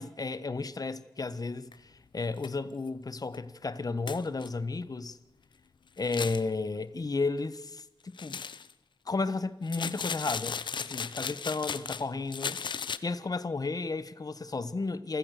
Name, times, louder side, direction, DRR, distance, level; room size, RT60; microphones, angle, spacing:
voice 1, 0.0-5.2 6.0-8.4 9.1-12.6 13.0-15.2, left 3 dB, 55° left, 1.4 m, -33 dB
sound 1, 1.7-1.8 2.4-2.5 2.9-3.0 3.3-3.4 4.1-4.5 6.0-6.4 8.2-8.7 9.7-12.0 12.3-13.0, left 6 dB, 90° left, 0.8 m, -36 dB
27.5 x 15.5 x 6.8 m
cardioid pair, 55°, 8 cm